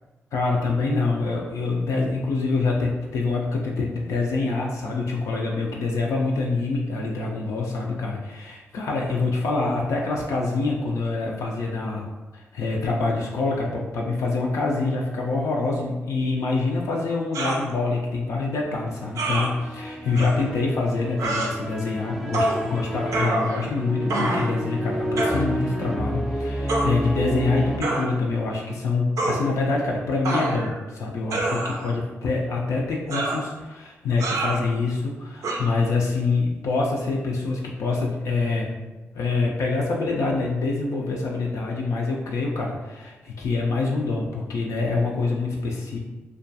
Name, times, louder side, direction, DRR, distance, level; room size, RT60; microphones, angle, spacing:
voice 1, 0.3-12.1 12.3-38.8 39.1-46.0, left 3 dB, 70° left, -2 dB, 0.4 m, -25 dB
sound 1, 17.3-17.6 19.2-19.5 20.2-20.3 21.2-21.5 22.3-22.6 23.1-23.7 24.1-24.5 25.2-25.4 26.7-26.9 27.8-28.1 29.2-29.4 30.3-30.8 31.3-31.9 33.1-33.4 34.2-34.6 35.4-35.6, right 2 dB, 75° right, 0.4 m, -26 dB
sound 2, 18.8-27.8, equal, 5° right, 0.4 m, -30 dB
2.3 x 2.2 x 2.6 m, 1.2 s
supercardioid pair, 45°, 6 cm